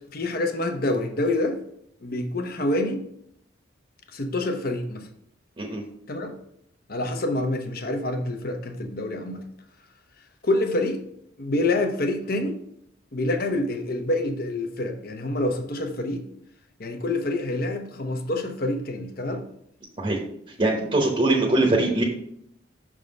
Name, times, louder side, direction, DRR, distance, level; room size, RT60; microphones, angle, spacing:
voice 1, 0.1-1.6 2.0-3.0 4.1-5.1 6.1-6.3 6.9-9.4 10.4-11.0 11.4-12.6 13.1-16.2 16.8-19.4, left 2 dB, 55° left, 5 dB, 0.8 m, -27 dB
voice 2, 20.6-22.0, right 2 dB, 30° right, -1 dB, 1.0 m, -22 dB
6.4 x 3.7 x 5.1 m, 0.71 s
head